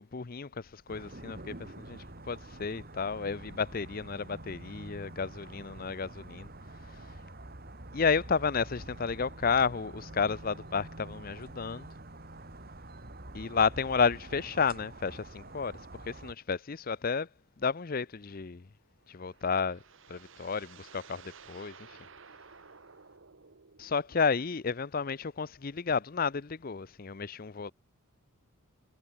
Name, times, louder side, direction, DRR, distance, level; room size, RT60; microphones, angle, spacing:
voice 1, 0.0-2.0 2.3-6.5 7.9-11.9 13.3-15.8 16.1-17.3 17.6-18.6 19.1-19.8 20.1-21.7 23.8-27.7, left 5 dB, 40° left, 0.6 m, -31 dB
sound 1, 0.9-16.3, right 1 dB, 45° right, 2.5 m, -47 dB
sound 2, 19.0-24.2, right 6 dB, 60° right, 1.2 m, -54 dB
head